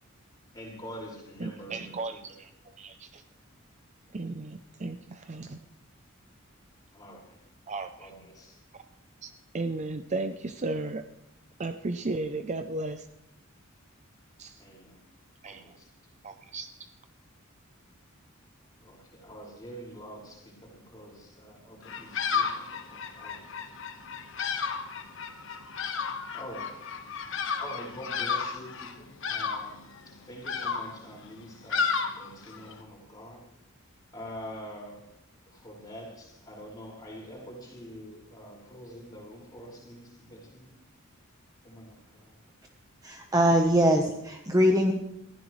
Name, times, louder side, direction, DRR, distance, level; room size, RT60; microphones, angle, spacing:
voice 1, 0.5-2.2 6.9-7.3 8.0-8.5 14.6-15.0 15.4-15.7 18.8-23.3 26.3-26.7 27.6-29.8 30.3-31.8 32.2-33.4 34.1-35.0 35.6-40.7 41.6-42.2, equal, 20° left, -4 dB, 5.4 m, -45 dB
voice 2, 1.4-2.5 2.8-3.2 4.1-5.6 7.7-8.1 9.2-11.0 11.6-13.1 14.4-14.6 15.4-15.8 16.2-16.9, right 2 dB, 35° right, 9 dB, 0.5 m, -35 dB
Bird vocalization bird call bird song, 21.8-32.8, left 6 dB, 60° left, 1.4 m, -33 dB
voice 3, 43.0-44.9, equal, 15° right, 2 dB, 1.0 m, -22 dB
21.0 x 15.0 x 3.2 m, 0.84 s
head